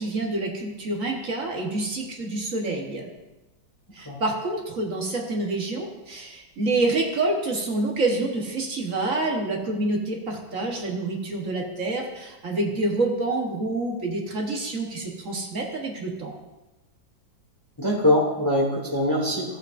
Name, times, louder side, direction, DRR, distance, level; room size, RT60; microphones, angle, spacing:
voice 1, 0.0-3.1 3.9-16.3, right 2 dB, 50° right, 0 dB, 1.4 m, -27 dB
voice 2, 17.8-19.6, left 1 dB, 15° left, -2 dB, 1.1 m, -23 dB
14.0 x 8.1 x 2.5 m, 1.1 s
omnidirectional pair, 2.1 m